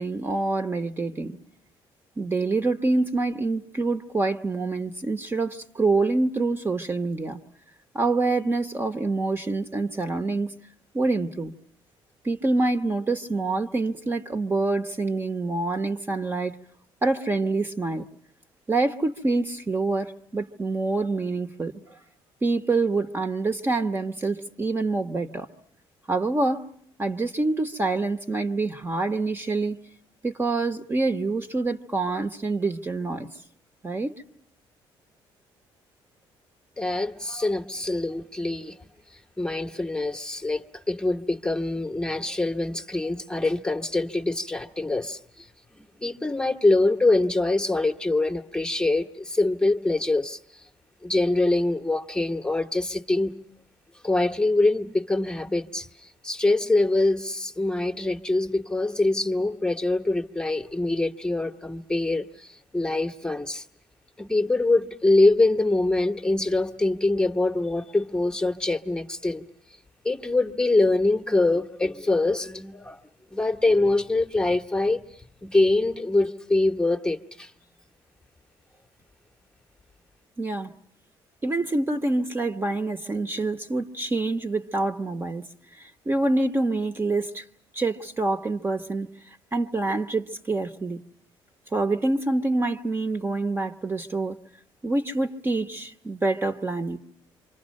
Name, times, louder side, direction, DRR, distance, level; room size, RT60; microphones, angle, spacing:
voice 1, 0.0-1.4 2.2-7.4 7.9-10.5 10.9-11.5 12.2-16.6 17.0-18.0 18.7-22.0 22.4-25.5 26.1-26.6 27.0-29.8 30.2-33.3 33.8-34.1 80.4-80.7 81.4-85.4 85.8-87.4 87.7-89.1 89.5-91.0 91.7-94.4 94.8-97.0, right 3 dB, 25° right, 1.0 m, -26 dB
voice 2, 36.8-38.8 39.4-45.5 45.7-50.6 51.0-53.3 54.0-63.6 64.2-69.4 70.0-73.0 73.3-77.5, left 2 dB, 10° left, 1.0 m, -24 dB
27.5 x 25.5 x 6.4 m
cardioid pair, 110°, 10 cm